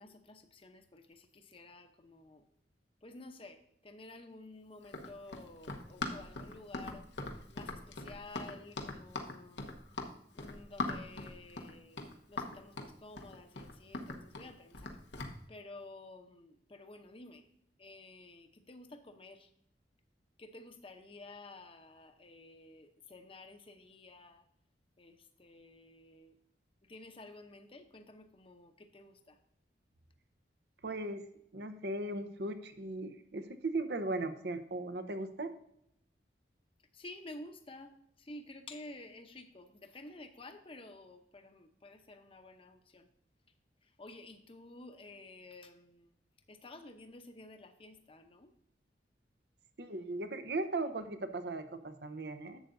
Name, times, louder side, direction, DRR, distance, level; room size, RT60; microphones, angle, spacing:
voice 1, 0.0-2.5 3.0-7.1 7.5-9.7 10.3-15.0 15.5-17.5 17.8-19.5 20.4-24.5 25.0-26.4 26.8-29.4 36.9-43.1 43.8-46.1 46.5-48.5, left 2 dB, 30° left, 7 dB, 0.8 m, -52 dB
Run, 4.8-15.4, left 2 dB, 85° left, 1.1 m, -41 dB
voice 2, 30.8-31.2 31.5-35.5 49.8-52.6, right 2 dB, 65° right, 9 dB, 0.8 m, -38 dB
11.0 x 7.8 x 2.6 m, 0.74 s
head